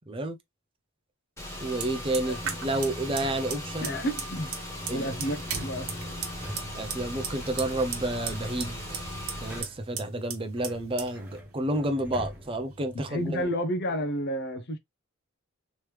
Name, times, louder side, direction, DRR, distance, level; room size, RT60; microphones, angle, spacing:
voice 1, 0.1-0.4 1.6-4.0 4.9-5.2 6.7-9.1 9.4-13.5, right 1 dB, 25° right, 0.5 m, -30 dB
Car / Engine, 1.4-9.6, left 1 dB, 15° left, 1.1 m, -38 dB
Fire, 1.6-13.4, right 6 dB, 75° right, 1.1 m, -39 dB
sound 1, 2.1-3.8 5.2-7.7 8.1-10.0 10.5-13.6, equal, 10° right, 0.9 m, -47 dB
voice 2, 3.8-4.5 4.9-5.9 12.9-14.8, equal, 50° left, 0.6 m, -31 dB
3.2 x 3.1 x 3.1 m
head